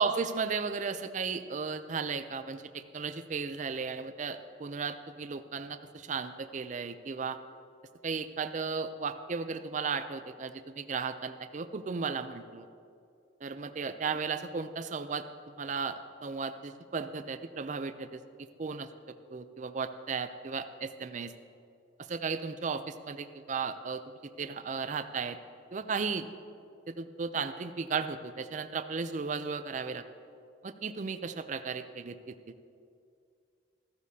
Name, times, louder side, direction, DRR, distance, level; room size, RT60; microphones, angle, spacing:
voice 1, 0.0-7.4 8.0-12.7 13.4-15.2 15.6-18.2 18.6-18.9 19.3-21.3 22.1-24.0 24.4-25.4 25.7-26.3 26.9-30.0 30.6-32.2 32.5-32.6, right 5 dB, 40° right, 10 dB, 0.4 m, -35 dB
14.5 x 14.0 x 2.8 m, 2.4 s
head